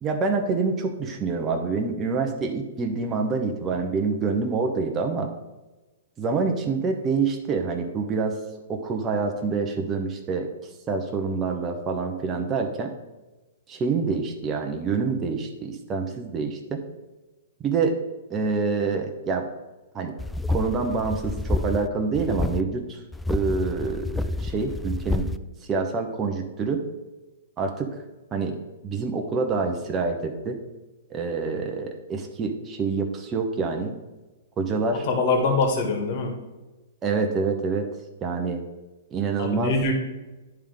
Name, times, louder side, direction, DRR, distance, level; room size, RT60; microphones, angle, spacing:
voice 1, 0.0-5.3 6.2-8.4 8.7-10.5 10.9-12.9 13.7-16.8 17.6-18.0 18.3-19.5 19.9-20.1 20.5-23.0 23.3-25.3 25.7-26.8 27.6-27.9 28.3-28.6 28.8-30.6 31.1-34.0 34.6-35.0 37.0-37.9 38.2-38.6 39.1-39.9, right 4 dB, 25° right, 3 dB, 1.0 m, -26 dB
sound 1, 20.2-21.9 22.1-22.6 23.1-25.4, left 2 dB, 5° left, 0.3 m, -28 dB
voice 2, 35.0-36.3 39.4-39.9, left 3 dB, 50° left, 2 dB, 2.0 m, -23 dB
10.5 x 3.7 x 5.0 m, 1.1 s
hypercardioid pair, 120°, 0 cm